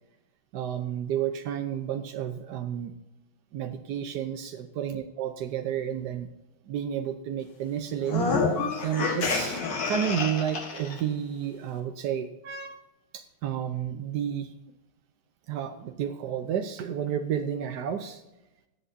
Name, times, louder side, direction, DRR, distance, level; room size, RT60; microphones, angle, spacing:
voice 1, 0.5-2.9 3.5-6.3 6.7-8.3 8.8-12.8 13.1-14.5 15.5-18.2, right 9 dB, 90° right, 6 dB, 1.4 m, -31 dB
sound 1, 8.0-11.0, left 4 dB, 65° left, 2.1 m, -28 dB
22.0 x 8.0 x 2.7 m, 0.98 s
omnidirectional pair, 1.8 m